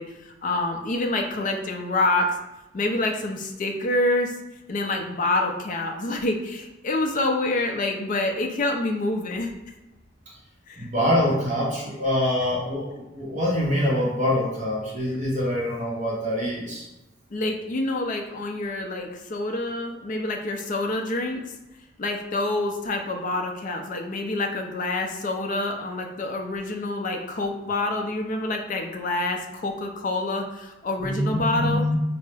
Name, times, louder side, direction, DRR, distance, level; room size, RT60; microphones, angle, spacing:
voice 1, 0.0-2.3 2.7-4.3 4.7-9.5 10.7-10.9 17.3-21.5 22.0-31.9, left 2 dB, 45° left, 3 dB, 0.4 m, -27 dB
voice 2, 10.8-16.9 31.0-32.0, left 1 dB, 40° right, -5 dB, 0.8 m, -25 dB
4.4 x 2.0 x 3.2 m, 0.97 s
head